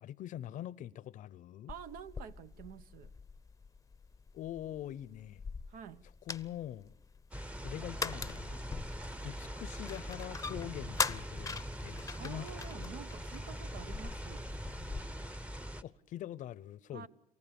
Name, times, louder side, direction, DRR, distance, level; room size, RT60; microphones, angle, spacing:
voice 1, 0.0-1.7 4.3-5.4 6.3-6.9 7.6-8.6 9.2-12.9 15.8-17.1, left 12 dB, 60° left, 0.7 m, -44 dB
sound 1, 1.7-15.0, left 5 dB, 20° left, 0.7 m, -43 dB
voice 2, 1.7-3.1 5.7-6.0 12.2-14.5 16.9-17.1, right 8 dB, 70° right, 0.9 m, -48 dB
sound 2, 7.3-15.8, equal, 10° right, 0.9 m, -42 dB
28.0 x 14.5 x 7.0 m
supercardioid pair, 80°, 15 cm